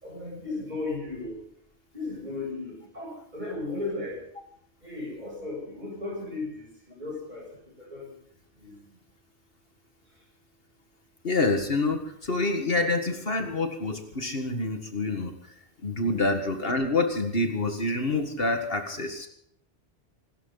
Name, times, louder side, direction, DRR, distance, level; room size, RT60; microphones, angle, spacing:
voice 1, 0.0-1.3 1.9-4.1 4.8-6.5 7.0-7.4 7.9-8.0 16.1-16.3, left 2 dB, 40° right, -2 dB, 7.8 m, -35 dB
voice 2, 11.2-15.3 15.8-19.3, left 2 dB, 60° left, 5 dB, 2.0 m, -27 dB
25.5 x 13.0 x 4.0 m, 0.68 s
omnidirectional pair, 1.1 m